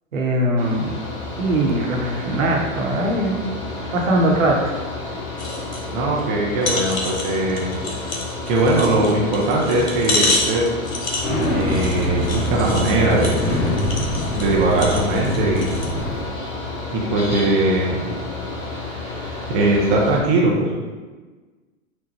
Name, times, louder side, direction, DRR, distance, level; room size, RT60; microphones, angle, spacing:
voice 1, 0.1-1.0 1.4-3.4 3.9-4.8, right 1 dB, 70° right, -1 dB, 1.0 m, -21 dB
Mechanical fan, 0.6-20.2, left 3 dB, 35° left, 1.1 m, -31 dB
sound 1, 5.4-5.8 6.2-6.3 6.6-15.9 16.5-16.6, left 2 dB, 75° left, 1.0 m, -28 dB
voice 2, 5.9-7.8 8.5-10.7 11.5-13.5 14.3-15.7 16.9-18.2 18.8-20.8, right 2 dB, 15° right, -3 dB, 0.4 m, -20 dB
sound 2, 11.2-16.2, equal, 20° left, 1.5 m, -24 dB
4.4 x 2.1 x 4.1 m, 1.3 s
figure-of-eight pair, 105°, 41 cm